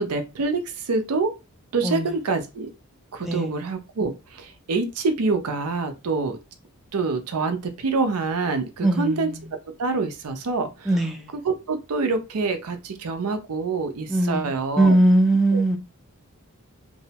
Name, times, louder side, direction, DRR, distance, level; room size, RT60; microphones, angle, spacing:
voice 1, 0.0-1.3 1.7-2.7 3.1-6.4 6.9-9.3 9.8-10.9 11.4-15.0 15.5-15.6, right 3 dB, 85° right, 0.5 m, -26 dB
voice 2, 1.8-2.1 3.2-3.5 8.8-9.4 10.9-11.3 14.1-15.8, right 1 dB, ahead, 0.4 m, -21 dB
2.6 x 2.0 x 2.8 m
head